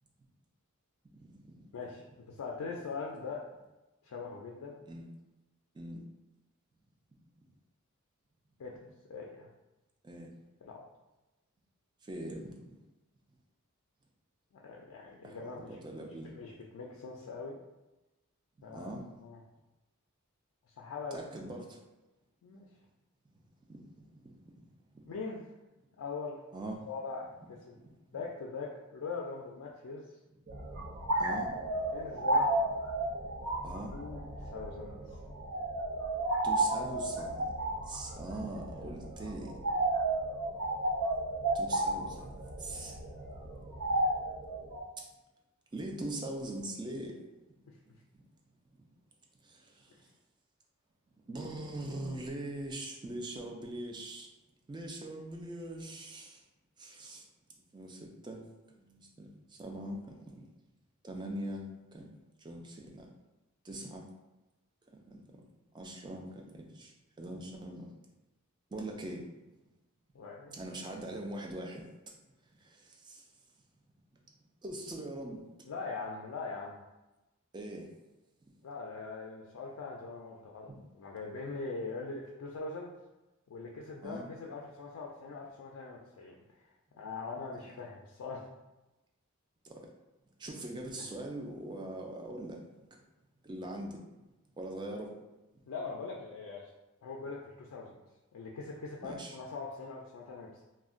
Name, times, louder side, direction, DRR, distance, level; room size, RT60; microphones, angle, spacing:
voice 1, 1.1-1.7 4.9-5.1 5.7-6.0 10.0-10.3 12.0-12.6 15.2-16.3 18.7-19.0 21.1-21.8 23.7-24.7 25.0-25.1 26.5-26.9 30.5-30.6 31.2-31.7 33.6-33.9 36.4-39.5 41.5-43.0 43.4-43.5 45.7-47.2 48.1-48.2 49.4-50.1 51.3-54.3 54.7-56.4 56.8-57.2 57.7-58.4 58.8-60.5 61.0-63.1 63.6-64.0 64.9-65.2 65.7-67.9 68.7-69.2 70.5-71.9 72.6-73.3 74.6-75.4 77.5-77.9 80.7-80.8 84.0-84.3 89.6-89.9 90.4-92.6 93.4-94.0 94.6-95.2 99.0-99.3, right 1 dB, 20° right, 1 dB, 0.3 m, -42 dB
voice 2, 1.7-3.4 4.0-4.8 8.6-8.7 9.1-9.5 10.6-10.8 14.6-15.7 16.2-17.6 18.6-18.9 19.2-19.4 20.7-21.2 22.4-22.7 25.1-25.4 26.0-26.4 26.9-27.8 28.1-30.0 31.9-32.5 33.9-35.2 47.6-48.0 70.1-70.6 75.7-76.8 78.6-82.9 83.5-86.3 87.0-88.5 95.7-96.7 97.0-98.0 98.3-100.6, left 4 dB, 85° left, -2 dB, 0.4 m, -42 dB
sound 1, 30.5-44.8, right 2 dB, 80° right, 0.6 m, -33 dB
2.4 x 2.1 x 3.6 m, 1.0 s
head